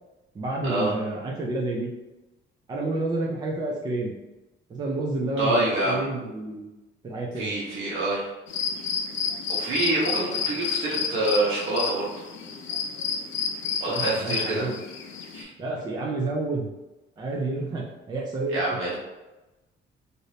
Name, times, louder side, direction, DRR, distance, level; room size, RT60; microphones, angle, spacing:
voice 1, 0.3-1.9 2.7-4.1 4.7-6.7 7.0-7.5 13.9-14.8 15.6-16.7 17.2-18.8, right 2 dB, 20° right, -2 dB, 0.4 m, -29 dB
voice 2, 5.4-6.0 7.4-8.3 9.5-12.1 13.8-14.7 15.3-15.5 18.5-19.0, right 2 dB, 75° right, -7 dB, 0.9 m, -26 dB
sound 1, 8.5-15.4, left 6 dB, 70° left, 0.5 m, -30 dB
3.3 x 2.5 x 2.7 m, 1.0 s
cardioid pair, 180°, 20 cm